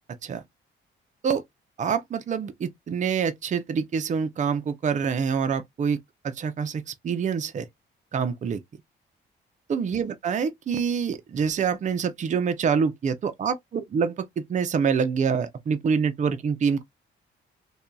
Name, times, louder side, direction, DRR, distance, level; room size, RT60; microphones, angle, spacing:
voice 1, 1.8-6.0 6.2-7.7 8.1-8.6 9.7-16.8, right 6 dB, 40° right, 0.5 m, -26 dB
2.7 x 2.3 x 2.3 m
cardioid pair, 90°, 20 cm